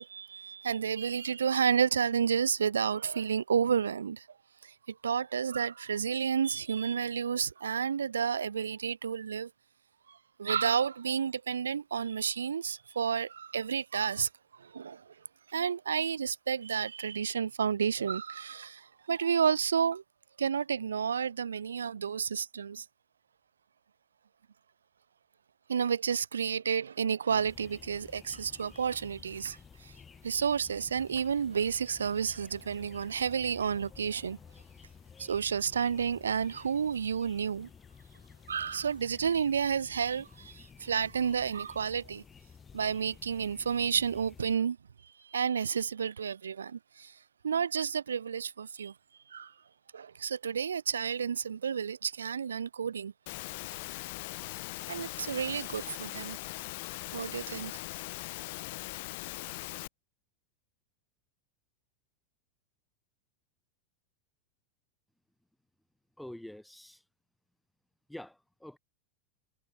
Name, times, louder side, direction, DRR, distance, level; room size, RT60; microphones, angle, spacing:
voice 1, 0.0-4.3 4.6-9.5 10.1-14.3 14.6-15.1 15.5-20.0 20.4-22.8 25.7-29.9 30.2-34.4 35.2-37.7 38.5-42.2 42.7-44.8 45.2-47.1 47.4-48.9 49.3-49.5 49.9-53.1 54.9-56.4 57.1-57.7, right 7 dB, 85° right, 0.9 m, -31 dB
sound 1, 27.3-44.6, left 6 dB, 20° left, 3.4 m, -54 dB
Engine / Mechanisms, 53.3-59.9, left 23 dB, 60° left, 3.3 m, -40 dB
voice 2, 66.2-67.0 68.1-68.8, left 1 dB, 5° left, 5.3 m, -46 dB
hypercardioid pair, 100°, 0 cm